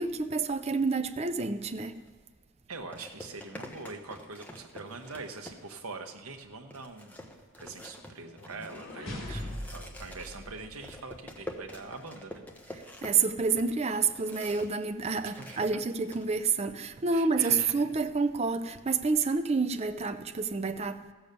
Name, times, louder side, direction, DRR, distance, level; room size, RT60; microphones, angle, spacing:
voice 1, 0.0-2.0 9.3-9.4 13.0-21.1, right 4 dB, 30° right, 0.5 m, -29 dB
sound 1, 1.9-2.1 2.9-5.9 6.3-6.4 6.7-14.8 15.1-16.3, left 1 dB, 5° left, 0.9 m, -47 dB
voice 2, 2.7-12.4 15.4-15.7 17.1-17.9, right 3 dB, 85° right, 1.1 m, -44 dB
sound 2, 8.2-11.3, left 1 dB, 80° left, 3.4 m, -41 dB
14.5 x 7.1 x 6.8 m
head